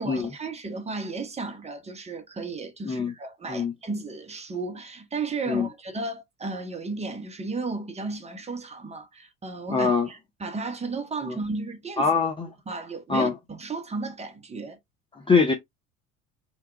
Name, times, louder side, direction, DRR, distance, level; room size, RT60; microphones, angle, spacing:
voice 1, 0.0-12.1 12.7-14.8, right 3 dB, 15° right, 0.8 m, -34 dB
voice 2, 2.8-3.1 3.5-3.7 5.5-5.7 9.7-10.1 11.2-11.4 12.0-12.5 13.1-13.3 15.1-15.5, left 5 dB, 10° left, 0.5 m, -23 dB
3.0 x 2.2 x 3.5 m
figure-of-eight pair, 70°, 43 cm